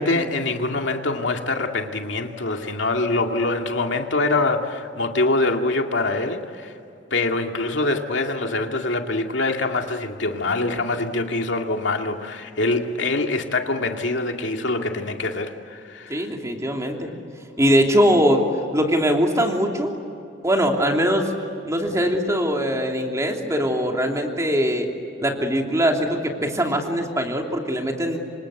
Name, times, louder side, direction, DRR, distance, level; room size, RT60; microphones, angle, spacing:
voice 1, 0.0-6.7 7.1-16.3, left 2 dB, 80° left, 2.3 m, -24 dB
voice 2, 16.1-17.1 17.6-18.4 18.7-20.0 20.4-21.3 21.6-24.9 25.2-28.2, equal, 15° right, 3.1 m, -21 dB
28.0 x 26.0 x 8.3 m
head